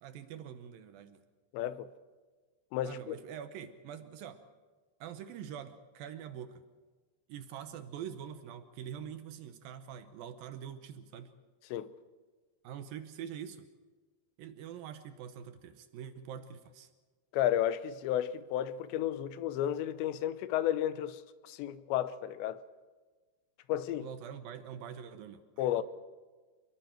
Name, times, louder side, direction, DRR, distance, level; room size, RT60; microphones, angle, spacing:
voice 1, 0.0-1.2 2.8-4.4 5.0-6.6 7.3-11.3 12.6-13.7 14.4-16.9 24.0-25.8, right 8 dB, 75° right, 2.2 m, -45 dB
voice 2, 1.5-1.9 2.7-3.2 11.7-11.9 17.3-22.6 23.7-24.1 25.6-25.8, left 11 dB, 80° left, 2.9 m, -32 dB
28.0 x 21.5 x 4.5 m
omnidirectional pair, 5.2 m